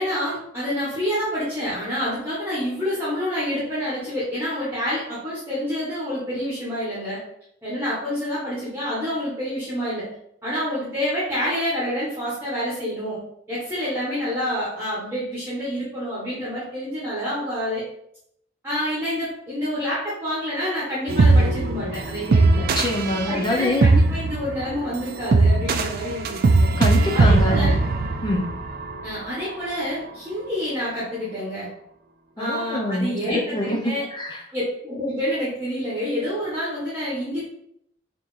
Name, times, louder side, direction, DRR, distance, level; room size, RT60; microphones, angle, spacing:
voice 1, 0.0-7.2 7.6-10.1 10.4-13.2 13.5-17.8 18.6-22.6 23.3-26.7 27.1-27.8 29.0-31.7 32.4-34.0 34.5-37.4, equal, 10° right, -8 dB, 1.1 m, -28 dB
sound 1, 21.1-29.3, right 3 dB, 50° right, 0.3 m, -20 dB
voice 2, 22.5-23.8 26.8-27.7 28.2-28.4 32.4-34.4, left 1 dB, 20° left, 1 dB, 0.6 m, -25 dB
4.2 x 2.9 x 3.1 m, 0.72 s
head